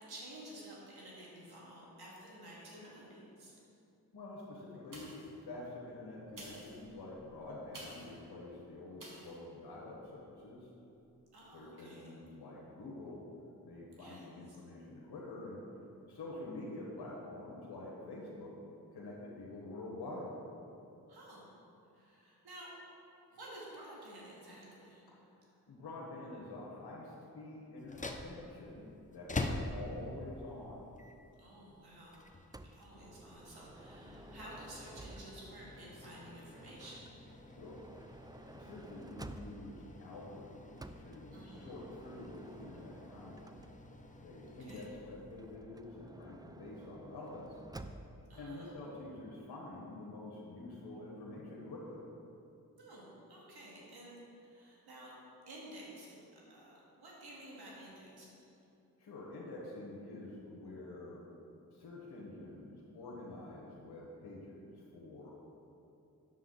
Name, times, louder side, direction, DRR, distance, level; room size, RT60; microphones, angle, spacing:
voice 1, 0.0-3.5 11.3-12.2 14.0-14.6 21.1-21.5 21.9-22.7 23.3-25.1 29.4-29.7 31.4-32.2 32.7-37.2 41.3-41.8 44.5-44.9 48.3-48.7 52.8-55.1 55.5-58.5, right 1 dB, 85° right, -5 dB, 2.1 m, -52 dB
voice 2, 4.1-10.7 11.5-13.2 13.6-15.6 16.1-18.5 18.9-20.3 25.1-25.2 25.7-30.9 37.5-37.8 38.5-43.6 44.2-47.6 48.4-52.0 59.0-61.2 61.7-65.3, left 2 dB, 90° left, -5 dB, 1.3 m, -47 dB
sound 1, 4.9-5.4 6.2-8.2 9.0-9.4 9.9-10.0, right 1 dB, 55° right, 1.8 m, -52 dB
sound 2, 27.8-45.6, left 2 dB, 20° left, 0.7 m, -47 dB
Motor vehicle (road) / Sliding door, 32.5-35.6 36.6-39.8 40.8-44.1 45.3-48.3, right 2 dB, 10° right, 0.4 m, -53 dB
9.1 x 6.7 x 4.0 m, 2.7 s
cardioid pair, 45°, 38 cm